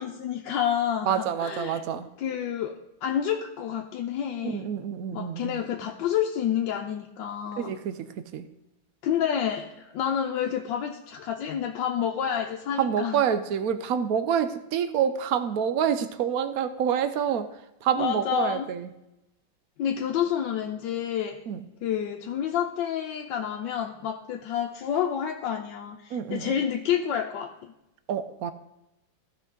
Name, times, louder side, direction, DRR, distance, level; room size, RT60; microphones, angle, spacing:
voice 1, 0.0-1.8 2.2-4.7 5.1-7.7 9.0-13.3 18.0-18.7 19.8-21.4 21.8-27.7, left 9 dB, 75° left, 1 dB, 1.3 m, -29 dB
voice 2, 1.1-2.1 4.4-5.6 7.6-8.5 12.8-17.5 17.8-18.9 21.5-21.6 26.1-26.5 28.1-28.5, right 8 dB, 65° right, 11 dB, 0.9 m, -27 dB
15.0 x 5.4 x 3.8 m, 0.90 s
omnidirectional pair, 2.1 m